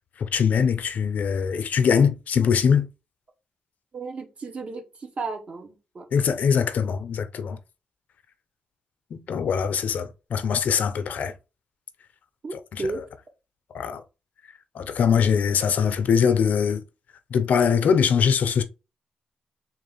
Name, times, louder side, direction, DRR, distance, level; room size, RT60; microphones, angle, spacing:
voice 1, 0.2-2.9 6.1-7.6 9.1-11.3 12.7-12.8 13.7-14.0 14.7-16.8 17.3-18.6, left 7 dB, 70° left, 0.6 m, -22 dB
voice 2, 3.9-6.0 12.4-13.0, right 3 dB, 50° right, 1.2 m, -34 dB
3.7 x 2.5 x 3.9 m
cardioid pair, 65°, 3 cm